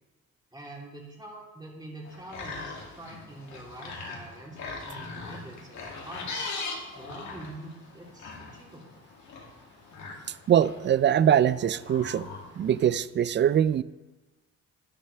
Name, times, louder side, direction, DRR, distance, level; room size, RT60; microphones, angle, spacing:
voice 1, 0.5-6.5 6.9-9.0, right 1 dB, 15° right, -3 dB, 3.1 m, -45 dB
sound 1, 2.0-12.9, left 3 dB, 65° left, 2.4 m, -41 dB
voice 2, 10.5-12.3 12.6-13.8, right 9 dB, 40° right, 17 dB, 0.4 m, -22 dB
10.5 x 10.0 x 3.3 m, 1.1 s
cardioid pair, 90°, 30 cm